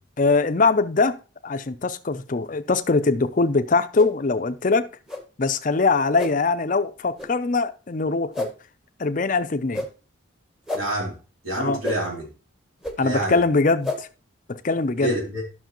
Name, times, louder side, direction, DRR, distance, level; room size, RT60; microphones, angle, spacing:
voice 1, 0.2-4.9 5.4-8.5 9.0-9.9 11.6-11.8 13.0-14.1 14.5-15.1, left 3 dB, 40° left, 0.5 m, -22 dB
sound 1, 3.9-4.1 5.1-5.2 6.2-6.3 7.2-7.3 8.3-8.5 9.7-9.9 10.7-10.8 11.8-12.0 12.8-12.9 13.8-14.0, left 2 dB, ahead, 1.0 m, -29 dB
voice 2, 10.7-11.2 11.4-12.3 13.0-13.4 15.0-15.4, right 1 dB, 80° right, 3.1 m, -27 dB
11.5 x 6.1 x 3.0 m
head